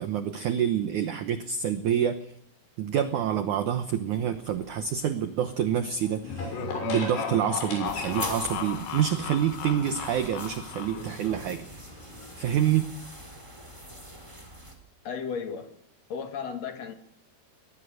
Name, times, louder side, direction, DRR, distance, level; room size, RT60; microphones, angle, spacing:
voice 1, 0.0-2.3 2.8-11.7 12.3-12.9, right 9 dB, 85° right, 9 dB, 1.7 m, -27 dB
sound 1, 4.2-12.7, left 1 dB, 70° left, 8.3 m, -41 dB
sound 2, 6.2-11.3, left 9 dB, 90° left, 3.8 m, -36 dB
sound 3, 7.8-14.7, right 1 dB, 5° right, 3.4 m, -44 dB
voice 2, 15.0-15.7 16.1-16.9, left 6 dB, 50° left, 6 dB, 2.5 m, -34 dB
22.5 x 20.0 x 6.4 m, 0.74 s
omnidirectional pair, 5.0 m